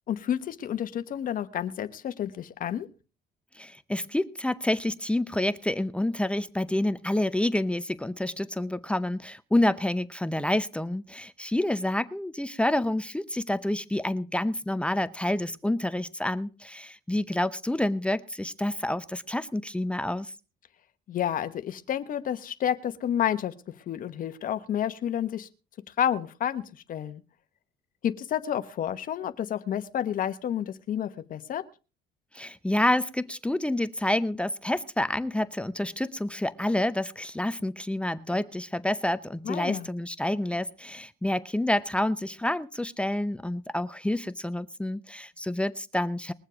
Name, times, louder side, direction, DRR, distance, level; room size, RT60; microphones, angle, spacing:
voice 1, 0.1-2.9 21.1-23.5 23.9-25.5 26.0-26.6 26.9-27.2 28.0-31.6 39.4-39.9, left 10 dB, 55° left, 10 dB, 1.1 m, -30 dB
voice 2, 3.5-20.3 32.3-46.3, left 1 dB, 5° left, 13 dB, 0.7 m, -28 dB
21.5 x 7.3 x 5.0 m, 0.33 s
cardioid pair, 110°, 17 cm